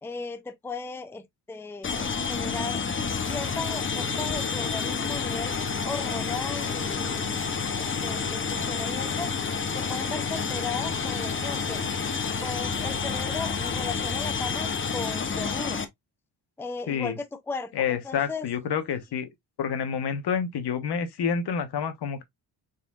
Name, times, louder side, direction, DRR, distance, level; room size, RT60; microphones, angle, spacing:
voice 1, 0.0-2.8 3.2-5.5 5.8-7.5 7.8-9.3 9.8-11.8 12.4-15.8 16.6-18.5, left 4 dB, 5° left, 0.5 m, -36 dB
sound 1, 1.8-15.8, left 5 dB, 30° left, 0.8 m, -29 dB
voice 2, 17.7-19.3 19.6-22.2, left 7 dB, 70° left, 1.1 m, -28 dB
4.1 x 4.0 x 2.4 m
cardioid pair, 90°, 42 cm